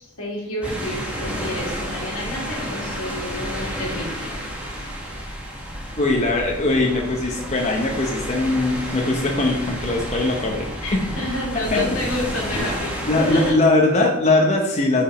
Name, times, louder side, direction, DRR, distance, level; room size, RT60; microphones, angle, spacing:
voice 1, 0.0-4.3 10.8-13.6, left 1 dB, 80° left, -3 dB, 2.5 m, -30 dB
sound 1, 0.6-13.5, equal, 5° right, 1.5 m, -30 dB
voice 2, 6.0-10.7 11.7-11.8 13.1-15.0, left 2 dB, 30° left, -1 dB, 0.8 m, -20 dB
6.0 x 5.0 x 5.0 m, 0.87 s
head